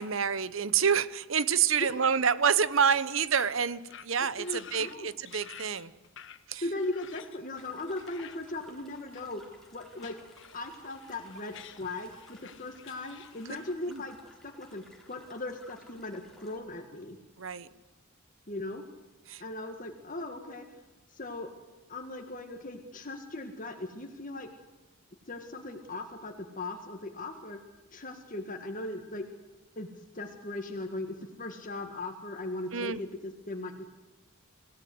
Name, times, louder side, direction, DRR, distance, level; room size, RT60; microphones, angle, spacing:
voice 1, 0.0-5.9 6.5-6.6 13.9-14.0 17.4-17.7 19.3-19.4 32.7-33.0, right 7 dB, 65° right, 17 dB, 0.9 m, -27 dB
sound 1, 3.3-3.6 3.8-4.1 4.4-5.0 5.3-8.4 8.9-9.4 9.8-13.7, left 9 dB, 60° left, 1.4 m, -51 dB
voice 2, 4.4-5.1 6.6-9.4 9.7-10.1 10.5-14.2 14.4-17.2 18.5-18.8 19.4-20.7 21.1-21.5 21.9-24.5 25.3-27.6 27.9-29.2 29.8-33.8, left 2 dB, 40° left, 4 dB, 1.8 m, -38 dB
sound 2, 7.5-16.6, left 1 dB, ahead, 3.7 m, -58 dB
26.0 x 17.0 x 7.9 m, 1.1 s
head